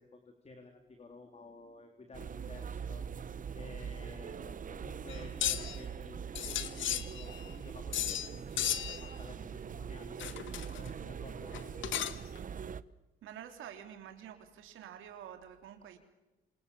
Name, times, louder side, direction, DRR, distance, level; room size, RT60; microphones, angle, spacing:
voice 1, 0.0-3.1 3.5-8.7 9.0-10.3 10.7-12.2, left 3 dB, 30° left, 4 dB, 3.7 m, -52 dB
sound 1, 2.1-12.8, right 7 dB, 40° right, 0.9 m, -42 dB
sound 2, 5.1-5.8 6.4-7.5 7.9-8.3 8.6-9.1 10.2-10.9 11.5-12.4, left 11 dB, 75° left, 1.7 m, -35 dB
voice 2, 13.2-16.0, right 9 dB, 85° right, 6 dB, 3.3 m, -48 dB
27.0 x 27.0 x 7.2 m, 1.0 s
cardioid pair, 90°, 20 cm